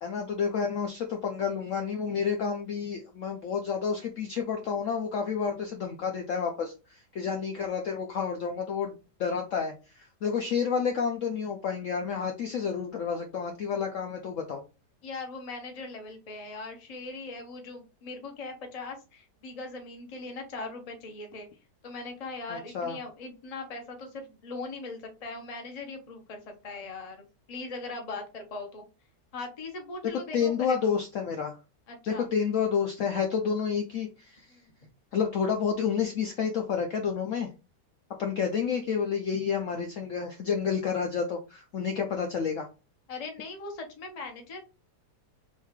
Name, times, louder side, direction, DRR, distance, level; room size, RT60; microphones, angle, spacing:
voice 1, 0.0-8.9 9.2-14.6 22.5-23.0 30.3-31.6 32.1-34.5 35.1-37.5 38.2-42.7, left 6 dB, 70° left, 3 dB, 0.8 m, -30 dB
voice 2, 15.0-21.5 21.8-27.2 27.5-28.8 29.3-30.9 31.9-32.3 34.5-34.6 43.1-44.6, left 3 dB, 35° left, 4 dB, 0.6 m, -40 dB
3.4 x 3.1 x 3.5 m, 0.31 s
omnidirectional pair, 1.8 m